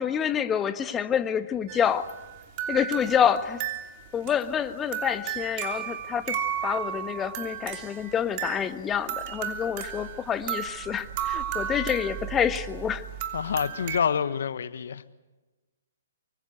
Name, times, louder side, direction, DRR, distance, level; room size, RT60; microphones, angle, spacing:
voice 1, 0.0-2.0 2.7-3.6 4.1-13.0, left 8 dB, 15° left, 1.4 m, -27 dB
sound 1, 1.7-14.0, right 9 dB, 40° right, 3.1 m, -34 dB
voice 2, 13.3-15.1, left 7 dB, 65° left, 1.2 m, -27 dB
25.0 x 24.0 x 8.1 m
hypercardioid pair, 130°, 0 cm